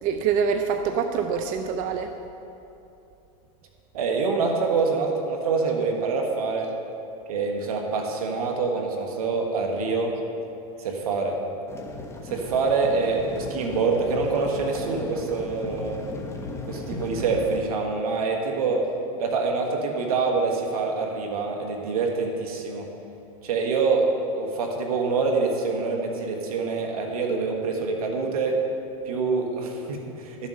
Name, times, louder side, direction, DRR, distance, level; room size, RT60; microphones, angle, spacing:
voice 1, 0.0-2.1, right 6 dB, 45° right, 6 dB, 0.6 m, -25 dB
voice 2, 3.9-6.7 7.3-10.2 10.8-11.4 12.2-16.0 16.7-18.9 19.2-22.9 23.4-28.6 29.1-30.5, right 4 dB, 80° right, 2 dB, 1.8 m, -25 dB
sound 1, 11.7-17.6, left 2 dB, 15° left, 1.3 m, -36 dB
12.5 x 7.3 x 5.5 m, 2.8 s
hypercardioid pair, 120°, 19 cm